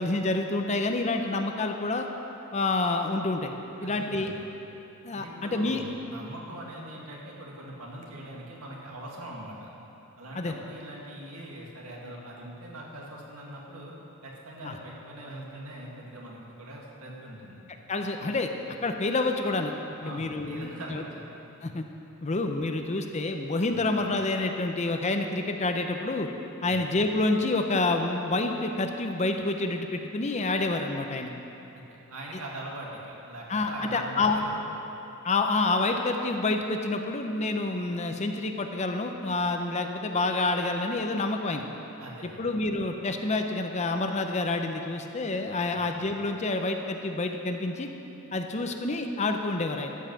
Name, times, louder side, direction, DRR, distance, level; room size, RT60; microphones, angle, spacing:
voice 1, 0.0-2.1 2.5-3.5 3.8-4.3 5.0-5.8 10.3-10.6 14.6-14.7 17.9-18.5 18.8-19.7 20.0-21.0 21.6-21.8 22.2-26.3 26.6-31.3 33.5-34.4 35.2-41.6 42.4-47.9 48.3-50.0, left 2 dB, 30° left, 5 dB, 0.6 m, -28 dB
voice 2, 3.8-4.4 5.1-9.7 10.2-13.9 14.2-17.6 20.0-21.3 23.7-23.9 26.6-26.9 31.7-31.8 32.1-34.6 42.0-42.5 45.7-45.9, right 1 dB, 80° right, -3 dB, 2.0 m, -42 dB
13.0 x 5.6 x 7.5 m, 3.0 s
head